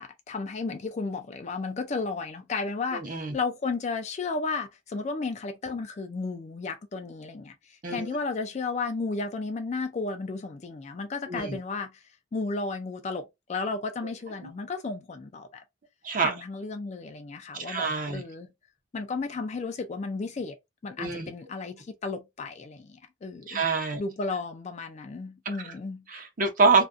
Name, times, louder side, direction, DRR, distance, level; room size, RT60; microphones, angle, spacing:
voice 1, 0.0-12.0 12.3-15.6 16.2-18.5 18.9-20.6 20.8-23.6 24.0-26.1, left 3 dB, 35° left, 0.3 m, -33 dB
voice 2, 2.9-3.3 7.8-8.1 11.3-11.6 16.0-16.3 17.7-18.2 21.0-21.3 23.5-24.0 26.1-26.8, right 4 dB, 45° right, 0.7 m, -25 dB
2.4 x 2.2 x 2.4 m
head